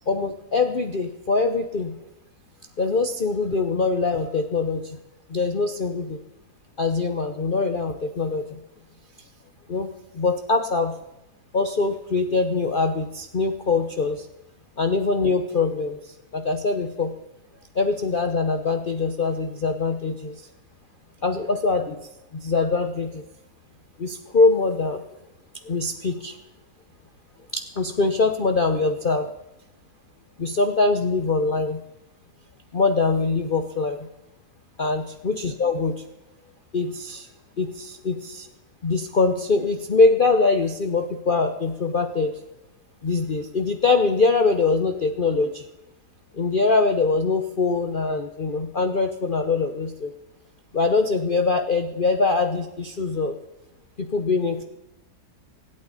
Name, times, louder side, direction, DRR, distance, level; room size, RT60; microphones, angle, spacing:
voice 1, 0.1-2.0 2.8-5.0 5.3-6.2 6.8-8.6 9.7-9.9 10.1-10.9 11.5-14.3 14.8-17.1 17.7-20.4 21.2-22.0 22.3-23.3 24.0-25.0 25.6-26.3 27.5-29.3 30.4-31.8 32.7-34.1 34.8-35.9 36.7-37.3 37.6-38.5 38.8-42.3 43.0-45.6 46.3-50.1 50.7-53.4 54.0-54.6, left 3 dB, 45° left, 6 dB, 0.6 m, -23 dB
25.0 x 8.8 x 4.1 m, 0.94 s
omnidirectional pair, 1.9 m